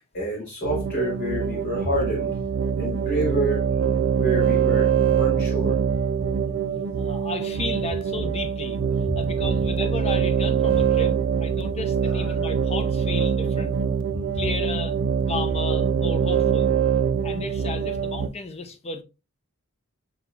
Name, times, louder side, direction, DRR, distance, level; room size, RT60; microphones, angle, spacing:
voice 1, 0.1-2.4 2.8-3.7 4.2-5.8 12.0-12.3, right 1 dB, 50° left, 1.2 m, -28 dB
sound 1, 0.6-18.3, right 7 dB, 60° right, 0.4 m, -24 dB
voice 2, 7.0-8.8 9.2-11.1 11.4-13.8 14.3-15.0 15.3-16.7 17.2-19.0, left 3 dB, 30° left, 0.5 m, -33 dB
6.0 x 2.9 x 2.3 m
head